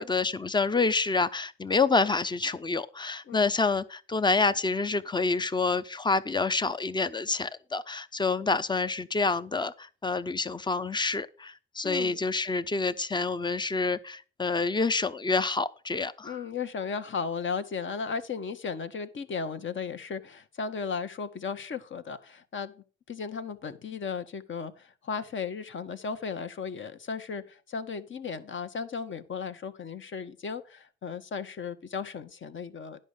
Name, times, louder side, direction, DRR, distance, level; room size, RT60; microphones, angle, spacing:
voice 1, 0.0-16.4, left 4 dB, 15° left, 0.8 m, -28 dB
voice 2, 11.8-12.2 16.2-33.0, left 5 dB, 40° left, 1.2 m, -35 dB
10.5 x 5.5 x 6.6 m
hypercardioid pair, 60°, 29 cm